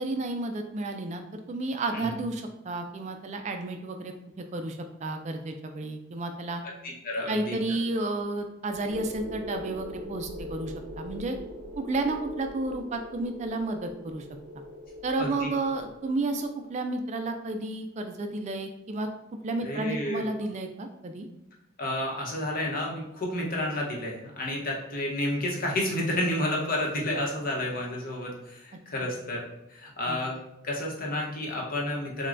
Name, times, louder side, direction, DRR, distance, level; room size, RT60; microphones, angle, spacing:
voice 1, 0.0-6.6 7.3-11.4 11.8-14.3 15.0-19.1 19.4-21.3 30.1-30.2, right 2 dB, 35° right, 6 dB, 0.3 m, -32 dB
voice 2, 6.8-7.6 15.2-15.5 19.6-20.3 21.8-30.4 30.6-32.3, left 1 dB, 45° left, -2 dB, 0.9 m, -31 dB
sound 1, 8.9-16.7, left 1 dB, 65° right, 0.9 m, -42 dB
6.3 x 2.2 x 2.5 m, 0.84 s
head